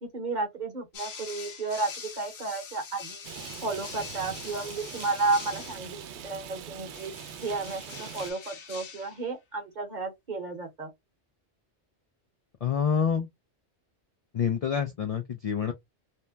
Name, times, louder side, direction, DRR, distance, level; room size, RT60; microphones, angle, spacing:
voice 1, 0.0-3.2 3.6-7.1 7.4-10.9, right 3 dB, 45° right, 0.9 m, -32 dB
sound 1, 0.9-6.1 6.9-9.3, left 6 dB, 85° left, 1.0 m, -44 dB
Rain, 3.2-8.3, right 8 dB, 85° right, 0.9 m, -42 dB
voice 2, 12.6-13.3 14.3-15.7, left 7 dB, 60° left, 0.4 m, -27 dB
2.7 x 2.1 x 3.2 m
omnidirectional pair, 1.1 m